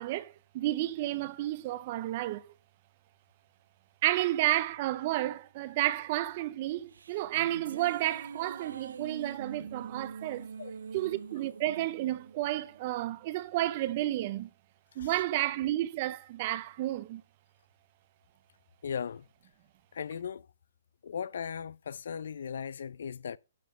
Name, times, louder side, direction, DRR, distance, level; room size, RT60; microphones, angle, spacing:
voice 1, 0.0-2.5 4.0-10.5 10.9-14.5 15.0-17.2, right 15 dB, 30° right, 0.5 m, -31 dB
sound 1, 6.7-13.3, right 6 dB, 85° right, 0.5 m, -45 dB
voice 2, 18.8-19.3 19.9-20.5 21.0-23.4, left 7 dB, 60° left, 0.4 m, -37 dB
12.0 x 7.1 x 3.1 m
hypercardioid pair, 170°, 0 cm